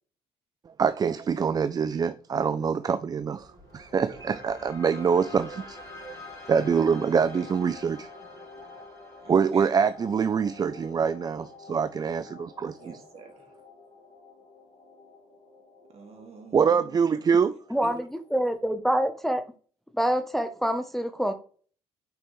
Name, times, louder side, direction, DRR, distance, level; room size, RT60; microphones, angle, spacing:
voice 1, 0.8-6.2 6.5-8.1 9.3-12.8 16.5-17.6, right 6 dB, 30° right, 0.4 m, -25 dB
sound 1, 3.2-19.2, left 4 dB, 25° left, 3.0 m, -48 dB
voice 2, 4.8-5.2 7.1-7.4 9.2-9.7 12.8-13.5 15.9-17.2 17.8-17.9, right 5 dB, 55° right, 2.2 m, -47 dB
voice 3, 17.7-19.4 19.9-21.3, equal, ahead, 0.8 m, -26 dB
5.9 x 5.2 x 3.1 m
hypercardioid pair, 60°, 13 cm